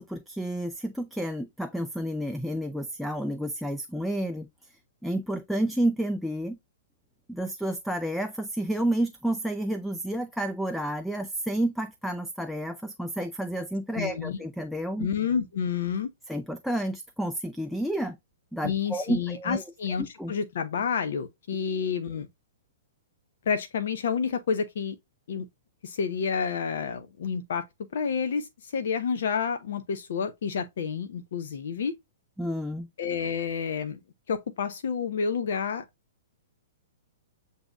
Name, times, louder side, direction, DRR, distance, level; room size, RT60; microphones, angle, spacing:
voice 1, 0.0-4.5 5.0-6.6 7.3-15.1 16.3-18.2 18.5-19.6 20.0-20.3 32.4-32.9, right 1 dB, ahead, 0.3 m, -30 dB
voice 2, 14.0-14.4 15.0-16.1 18.6-22.3 23.5-25.0 25.3-25.5 25.8-27.6 27.9-32.0 33.0-34.0 34.3-35.8, left 6 dB, 60° left, 0.5 m, -29 dB
7.7 x 2.7 x 2.3 m
figure-of-eight pair, 110°, 0 cm